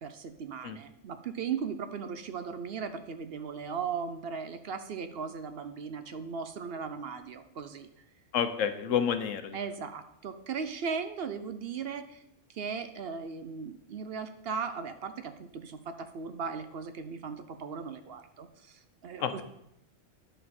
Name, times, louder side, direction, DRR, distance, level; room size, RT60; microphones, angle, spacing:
voice 1, 0.0-7.9 9.5-12.2 12.5-19.4, right 6 dB, 60° right, 9 dB, 0.7 m, -37 dB
voice 2, 8.3-9.6 19.2-19.4, left 8 dB, 80° left, 9 dB, 1.1 m, -29 dB
10.0 x 6.6 x 4.2 m, 0.79 s
omnidirectional pair, 1.3 m